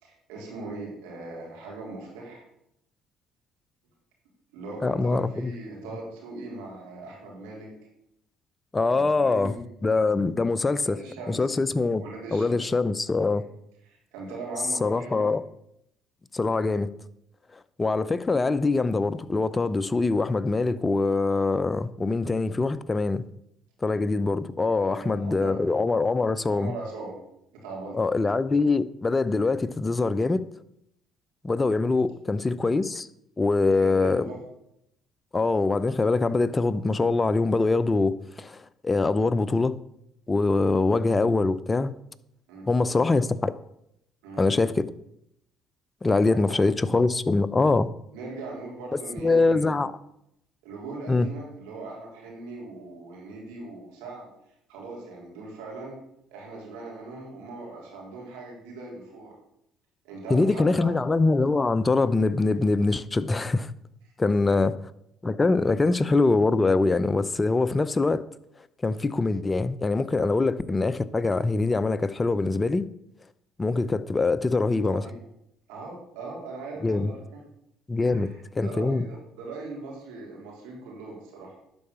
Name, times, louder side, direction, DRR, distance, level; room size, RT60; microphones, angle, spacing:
voice 1, 0.0-2.4 4.5-7.7 8.9-9.7 10.9-11.6 12.0-12.6 13.8-15.3 24.7-25.6 26.5-27.1 27.5-28.0 33.7-34.4 42.5-42.7 44.2-44.4 46.2-46.7 47.1-47.2 48.1-49.8 50.6-54.3 54.7-56.0 56.3-59.3 60.0-60.9 75.1-75.2 75.7-77.4 78.1-81.6, right 3 dB, 85° right, 3.6 m, -40 dB
voice 2, 4.8-5.5 8.7-9.5 9.8-11.0 11.3-12.0 12.3-13.4 14.8-15.4 16.3-16.9 17.8-23.2 23.8-26.7 27.9-30.5 31.4-33.1 33.4-34.2 35.3-39.8 40.3-41.9 42.7-43.5 44.4-44.9 46.0-47.9 49.2-49.9 51.1-51.3 60.3-63.7 64.2-64.7 65.2-68.2 68.8-72.9 73.6-75.0 76.8-77.1 77.9-79.0, left 3 dB, 25° left, 0.6 m, -23 dB
11.5 x 4.7 x 6.8 m
supercardioid pair, 65°, 0 cm